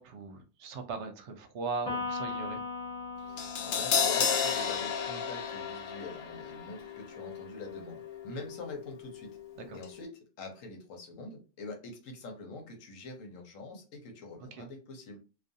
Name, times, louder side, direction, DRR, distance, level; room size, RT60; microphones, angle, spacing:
voice 1, 0.0-2.6 8.3-8.4 9.6-9.8 14.5-14.7, right 4 dB, 65° right, 6 dB, 0.8 m, -39 dB
Electric guitar, 1.9-5.4, left 3 dB, 10° left, 0.3 m, -39 dB
voice 2, 3.3-9.3 9.7-15.2, left 3 dB, 80° left, 3 dB, 1.1 m, -45 dB
Crash cymbal, 3.4-9.5 9.8-9.9, left 6 dB, 65° left, 0.7 m, -33 dB
2.4 x 2.4 x 2.6 m, 0.34 s
omnidirectional pair, 1.3 m